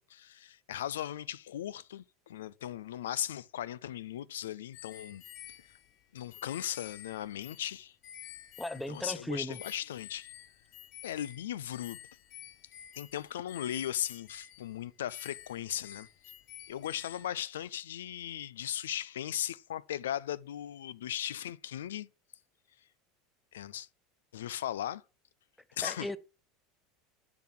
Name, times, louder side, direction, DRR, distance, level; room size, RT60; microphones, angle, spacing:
voice 1, 0.0-5.2 6.1-8.0 8.9-10.3 11.0-12.0 12.9-16.1 16.7-22.1 23.5-23.9 24.3-25.0 25.8-26.1, left 11 dB, 85° left, 0.4 m, -37 dB
sound 1, 4.7-9.2 9.5-17.3, left 10 dB, 55° left, 1.1 m, -50 dB
voice 2, 8.6-9.6 25.8-26.2, left 1 dB, 5° left, 0.7 m, -36 dB
7.0 x 6.0 x 7.5 m
hypercardioid pair, 95°, 0 cm